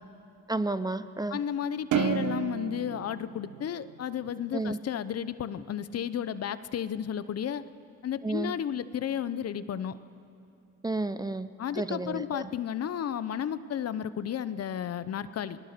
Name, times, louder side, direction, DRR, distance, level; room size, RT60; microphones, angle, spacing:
voice 1, 0.5-1.4 4.5-4.8 8.2-8.5 10.8-11.5 11.7-12.5, right 2 dB, 15° right, 13 dB, 0.7 m, -31 dB
voice 2, 1.3-7.6 8.0-10.0 11.6-15.6, left 9 dB, 55° left, 14 dB, 0.8 m, -33 dB
sound 1, 1.9-4.5, right 8 dB, 80° right, 1.3 m, -31 dB
28.5 x 20.0 x 6.7 m, 2.7 s
cardioid pair, 90°, 30 cm